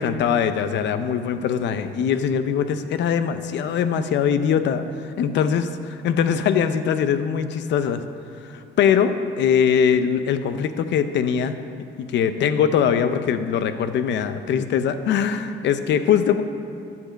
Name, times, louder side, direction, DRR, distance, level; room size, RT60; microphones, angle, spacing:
voice 1, 0.0-5.7 6.0-8.0 8.5-9.1 9.4-11.5 12.1-16.4, left 8 dB, 65° left, 10 dB, 0.6 m, -21 dB
11.0 x 5.1 x 7.5 m, 2.8 s
cardioid pair, 170°, 20 cm